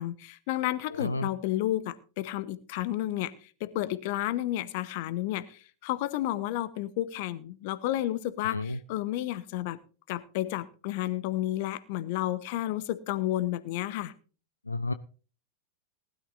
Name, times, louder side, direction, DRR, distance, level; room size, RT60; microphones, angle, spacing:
voice 1, 0.0-9.8 10.1-14.1, left 14 dB, 50° left, 15 dB, 1.1 m, -31 dB
voice 2, 0.9-1.3 8.5-8.8 14.7-14.9, left 2 dB, 80° left, 12 dB, 0.6 m, -31 dB
19.5 x 12.5 x 2.6 m, 0.37 s
figure-of-eight pair, 90°, 0 cm